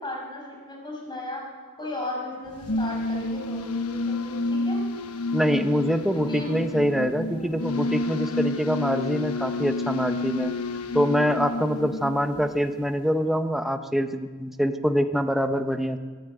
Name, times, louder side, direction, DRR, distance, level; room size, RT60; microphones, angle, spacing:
voice 1, 0.0-1.4 1.8-4.8 6.1-6.6 7.3-7.6, left 2 dB, 20° left, -1 dB, 7.1 m, -36 dB
sound 1, 2.5-12.9, left 2 dB, 85° left, 1.1 m, -29 dB
voice 2, 5.3-10.5 10.9-16.0, equal, ahead, 6 dB, 1.1 m, -25 dB
25.5 x 15.0 x 9.2 m, 1.5 s
head